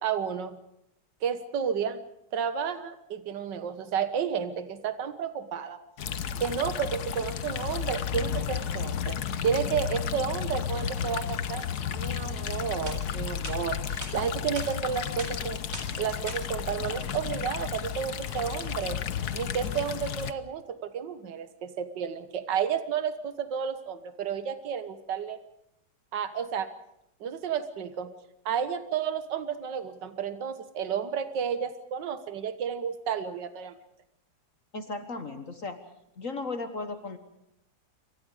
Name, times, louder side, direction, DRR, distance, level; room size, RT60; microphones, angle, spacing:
voice 1, 0.0-0.6 1.2-2.0 2.3-5.8 6.4-9.2 9.4-11.7 11.9-15.6 16.0-25.4 26.1-26.7 27.2-28.1 28.5-33.7, right 7 dB, 75° right, 11 dB, 2.0 m, -31 dB
sound 1, 6.0-20.3, left 8 dB, 65° left, 1.5 m, -33 dB
sound 2, 12.8-13.0 13.4-13.6 14.0-14.1 14.6-14.7 15.2-15.3 15.7-15.9 16.3-16.4, right 2 dB, 45° right, 4.8 m, -39 dB
voice 2, 34.7-35.8 36.2-37.2, left 3 dB, 45° left, 8 dB, 1.8 m, -35 dB
28.0 x 25.0 x 5.0 m, 0.81 s
omnidirectional pair, 1.9 m